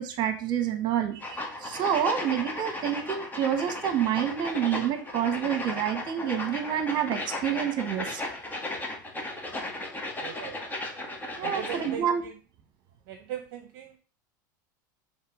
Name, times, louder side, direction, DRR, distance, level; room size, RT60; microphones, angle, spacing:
voice 1, 0.0-8.2 11.4-12.2, right 9 dB, 45° right, 7 dB, 1.6 m, -28 dB
sound 1, 1.2-12.0, left 1 dB, 15° left, 1.7 m, -35 dB
voice 2, 10.2-10.6 11.4-12.4 13.1-14.0, right 9 dB, 65° right, 6 dB, 0.8 m, -40 dB
6.4 x 3.4 x 5.1 m, 0.39 s
supercardioid pair, 105°, 11 cm